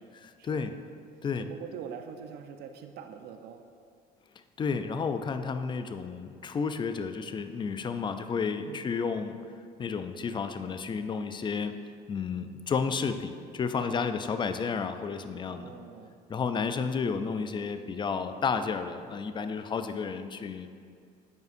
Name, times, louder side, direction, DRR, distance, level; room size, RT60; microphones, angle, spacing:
voice 1, 0.2-0.7 1.2-1.5 4.6-9.4 9.8-15.7 16.3-20.7, left 5 dB, 30° left, 9 dB, 0.4 m, -32 dB
voice 2, 1.4-3.6 8.6-9.0 13.8-14.3 15.5-16.2, right 7 dB, 75° right, 6 dB, 0.5 m, -44 dB
9.3 x 5.3 x 2.5 m, 2.2 s
cardioid pair, 110°, 17 cm